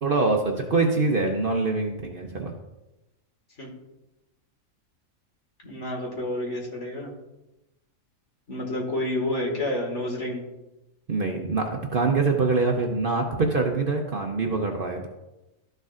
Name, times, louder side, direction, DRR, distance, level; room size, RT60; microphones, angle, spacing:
voice 1, 0.0-2.5 11.1-15.1, right 3 dB, 45° right, 2 dB, 0.8 m, -24 dB
voice 2, 5.6-7.1 8.5-10.4, left 1 dB, 55° left, -1 dB, 2.2 m, -29 dB
13.0 x 6.6 x 2.5 m, 0.99 s
omnidirectional pair, 1.4 m